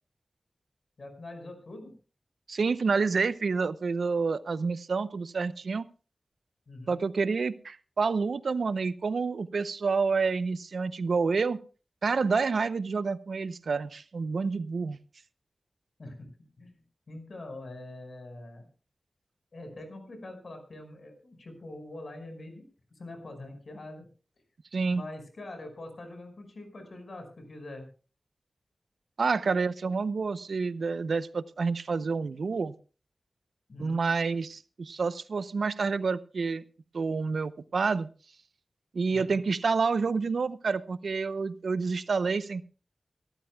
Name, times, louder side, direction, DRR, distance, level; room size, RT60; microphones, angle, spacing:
voice 1, 1.0-1.9 6.7-7.0 16.0-16.3 16.6-18.7 19.5-22.6 22.9-24.1 24.8-27.9 33.7-34.1 39.1-39.4, left 2 dB, 65° left, 5 dB, 5.5 m, -44 dB
voice 2, 2.5-5.9 6.9-11.6 12.0-15.0 24.7-25.0 29.2-32.7 33.8-36.6 36.9-38.1 38.9-42.6, right 4 dB, 85° right, 15 dB, 0.6 m, -28 dB
25.0 x 13.0 x 2.3 m, 0.36 s
wide cardioid pair, 85°, 0 cm